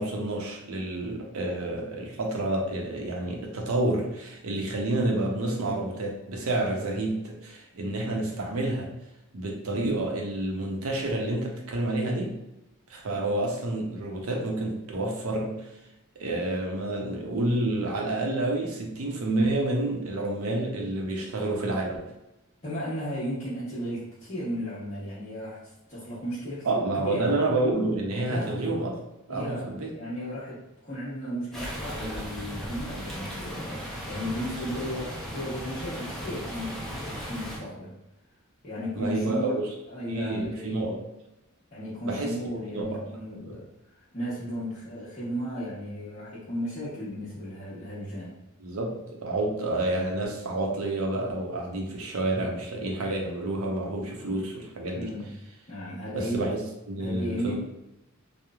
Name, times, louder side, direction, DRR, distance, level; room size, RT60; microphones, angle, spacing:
voice 1, 0.0-8.9 9.3-12.3 12.9-15.7 16.2-22.0 26.6-28.9 29.3-29.9 39.0-39.6 40.1-41.0 42.0-42.3 42.7-43.0 43.5-43.6 48.6-55.1 56.1-56.6 56.9-57.6, right 2 dB, 75° right, 0 dB, 0.6 m, -29 dB
voice 2, 22.6-27.3 28.2-28.6 29.3-37.9 38.6-39.6 39.9-40.8 41.7-43.7 44.1-48.3 54.9-55.3 55.7-56.4 57.0-57.6, equal, 30° left, -12 dB, 0.8 m, -35 dB
sound 1, 31.5-37.6, equal, ahead, 0.5 m, -36 dB
3.0 x 2.0 x 2.3 m, 0.93 s
head